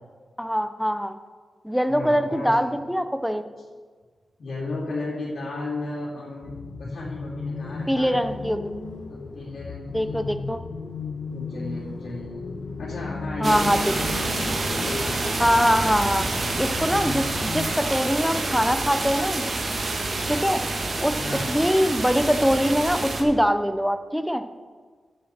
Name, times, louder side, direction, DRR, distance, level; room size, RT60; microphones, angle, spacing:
voice 1, 0.4-1.2 1.6-3.5 7.9-8.6 9.9-10.6 13.4-13.8 15.4-16.3 16.6-19.6 20.3-20.6 21.0-21.2 21.5-24.4, equal, ahead, 9 dB, 0.6 m, -23 dB
voice 2, 1.9-2.8 4.4-8.2 9.1-10.3 11.3-12.4 12.8-15.6 21.2-21.6, left 2 dB, 65° left, -10 dB, 2.7 m, -34 dB
sound 1, 6.4-17.7, left 4 dB, 80° left, 1.1 m, -35 dB
sound 2, 13.4-23.2, right 2 dB, 50° right, 1.4 m, -28 dB
14.5 x 7.2 x 4.4 m, 1.6 s
wide cardioid pair, 115°, 0 cm